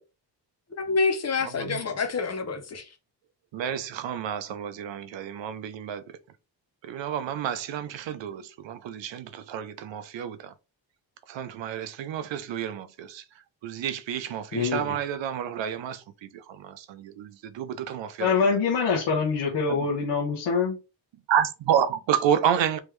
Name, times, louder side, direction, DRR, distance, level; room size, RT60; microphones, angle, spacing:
voice 1, 0.8-2.9, left 4 dB, 35° left, 0.7 m, -27 dB
voice 2, 3.5-6.0 6.8-10.5 11.3-13.2 13.6-18.4 19.7-19.9 21.3-22.8, right 9 dB, 80° right, 0.6 m, -30 dB
voice 3, 14.5-15.0 18.2-20.8, left 5 dB, 70° left, 1.0 m, -25 dB
3.6 x 3.1 x 3.1 m
wide cardioid pair, 180°, 44 cm